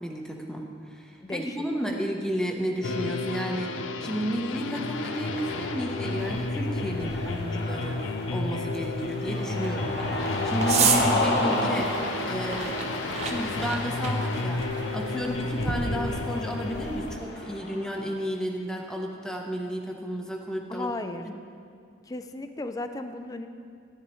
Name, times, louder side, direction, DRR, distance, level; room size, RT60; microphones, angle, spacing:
voice 1, 0.0-3.7 4.0-8.0 8.3-11.9 12.3-12.8 13.2-14.6 14.9-20.9 21.2-21.4, equal, 5° left, 0 dB, 0.8 m, -32 dB
voice 2, 1.2-1.6 1.8-2.0 20.7-21.3 22.0-23.5, left 2 dB, 20° left, 8 dB, 0.4 m, -35 dB
sound 1, 2.8-17.2, left 3 dB, 85° left, 0.5 m, -32 dB
Cheering, 4.6-18.1, left 2 dB, 60° left, 1.4 m, -33 dB
sound 2, 6.2-17.2, right 6 dB, 35° right, 0.6 m, -34 dB
13.5 x 11.0 x 3.1 m, 2.3 s
head